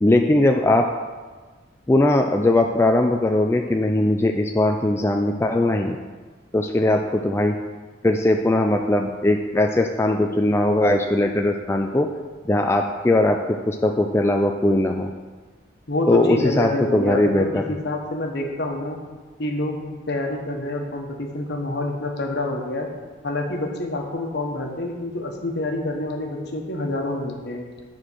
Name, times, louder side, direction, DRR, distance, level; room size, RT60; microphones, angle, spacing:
voice 1, 0.0-0.8 1.9-6.0 6.5-7.6 8.0-12.1 12.5-15.1 16.1-17.6, left 1 dB, 15° left, 3 dB, 0.3 m, -20 dB
voice 2, 15.9-19.0 19.4-22.9 23.2-27.6, left 2 dB, 55° left, 1 dB, 1.3 m, -27 dB
9.9 x 4.4 x 6.2 m, 1.4 s
head